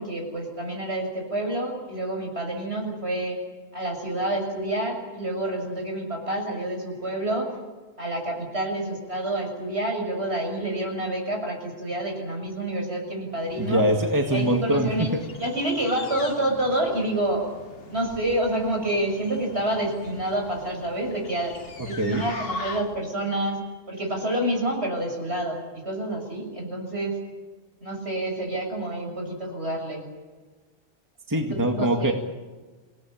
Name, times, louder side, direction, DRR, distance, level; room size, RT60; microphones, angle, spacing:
voice 1, 0.0-3.4 3.7-7.5 8.0-13.8 14.3-17.5 17.9-21.5 21.8-23.6 23.9-27.2 27.8-30.1 31.4-32.1, right 1 dB, 60° right, 2 dB, 7.2 m, -28 dB
sound 1, 13.3-23.2, left 3 dB, 55° left, 1.6 m, -41 dB
voice 2, 13.6-15.2 22.0-22.2 31.3-32.1, right 1 dB, 15° right, 3 dB, 2.0 m, -23 dB
28.0 x 18.0 x 9.0 m, 1.3 s
omnidirectional pair, 1.2 m